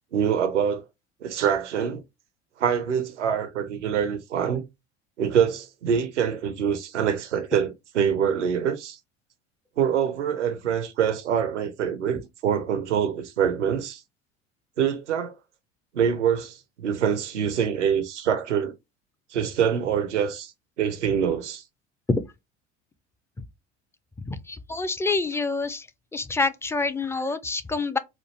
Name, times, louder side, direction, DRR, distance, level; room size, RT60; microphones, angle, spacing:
voice 1, 0.1-0.8 1.2-2.0 2.6-4.7 5.2-9.0 9.8-14.0 14.8-15.3 15.9-18.7 19.3-20.5 20.8-21.6, right 8 dB, 80° right, 0.6 m, -25 dB
voice 2, 24.3-25.9 26.1-28.0, left 3 dB, 10° left, 0.3 m, -27 dB
4.3 x 2.4 x 3.0 m
figure-of-eight pair, 70°, 35 cm